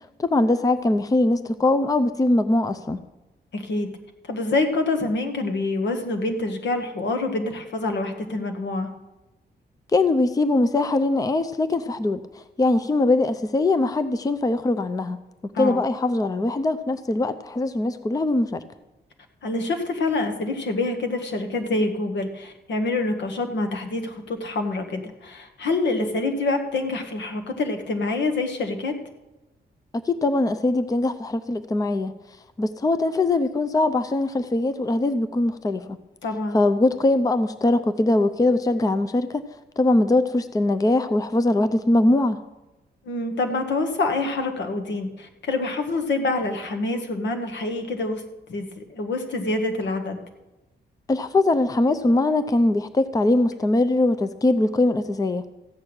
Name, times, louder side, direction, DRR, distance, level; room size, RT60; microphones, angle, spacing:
voice 1, 0.2-3.0 9.9-12.2 12.6-15.2 15.4-18.6 29.9-32.1 32.6-36.0 36.5-39.4 39.8-42.4 51.1-55.4, left 2 dB, 20° left, 12 dB, 0.5 m, -21 dB
voice 2, 3.5-3.9 4.3-8.9 15.5-15.8 19.4-28.9 36.2-36.6 43.0-48.2 48.5-50.2, left 2 dB, 85° left, 5 dB, 1.6 m, -26 dB
14.5 x 6.2 x 8.8 m, 1.0 s
wide cardioid pair, 145°, 18 cm